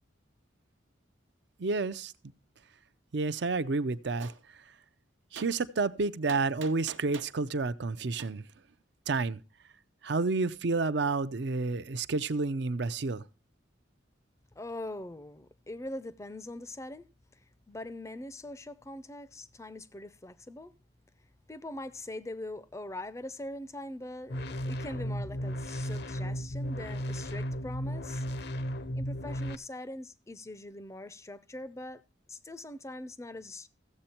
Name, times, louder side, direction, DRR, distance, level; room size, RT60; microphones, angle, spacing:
voice 1, 1.6-2.1 3.1-4.3 5.3-8.4 9.1-9.4 10.0-13.2, right 3 dB, 60° right, 0.6 m, -30 dB
Gunshot gunfire, 4.2-4.4 5.4-5.5 6.3-7.4 8.2-8.3, right 5 dB, 80° right, 0.9 m, -44 dB
voice 2, 14.6-17.1 17.7-20.7 21.5-28.3 28.9-32.0 32.3-33.7, left 1 dB, 15° left, 0.5 m, -42 dB
sound 1, 24.3-29.6, equal, 55° left, 0.7 m, -35 dB
15.0 x 7.8 x 4.4 m
head